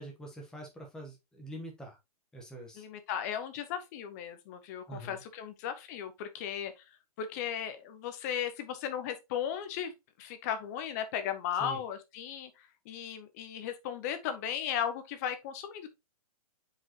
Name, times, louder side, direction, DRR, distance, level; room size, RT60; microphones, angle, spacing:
voice 1, 0.0-2.0 2.3-2.8 4.9-5.2 11.6-11.8, right 2 dB, 5° left, 1.1 m, -44 dB
voice 2, 2.8-6.7 7.2-9.9 10.2-15.9, left 9 dB, 25° left, 0.8 m, -36 dB
7.0 x 5.0 x 2.9 m
hypercardioid pair, 165°, 20 cm